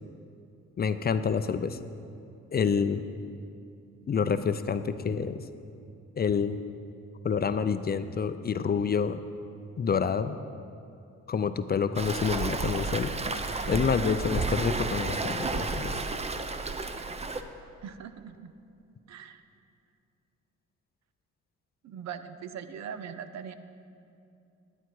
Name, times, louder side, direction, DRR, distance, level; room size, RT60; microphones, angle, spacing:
voice 1, 0.8-1.8 2.5-3.0 4.1-5.4 6.2-6.6 7.2-9.2 9.8-10.4 11.3-13.1 13.7-15.9, left 6 dB, 30° left, 11 dB, 0.5 m, -27 dB
Waves surf, 12.0-17.4, right 3 dB, 20° right, 0.6 m, -32 dB
voice 2, 17.8-18.5 19.1-19.4 21.8-23.5, right 8 dB, 65° right, 11 dB, 0.6 m, -41 dB
11.5 x 8.9 x 4.7 m, 2.6 s
cardioid pair, 90°, 30 cm